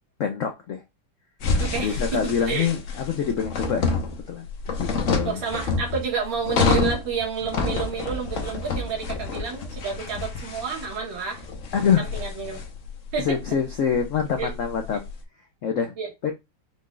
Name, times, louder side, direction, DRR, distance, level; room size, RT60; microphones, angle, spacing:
voice 1, 0.2-0.8 1.8-3.9 4.3-4.5 4.8-5.4 11.7-12.1 13.2-15.0 15.6-15.9 16.2-16.3, left 7 dB, 75° left, 0.7 m, -25 dB
sound 1, 1.4-15.1, left 4 dB, 50° left, 1.0 m, -28 dB
voice 2, 1.6-2.7 5.3-11.4 12.1-12.6 13.1-13.4 14.4-14.5 16.0-16.1, right 6 dB, 85° right, 2.5 m, -30 dB
5.5 x 2.4 x 3.7 m
omnidirectional pair, 2.1 m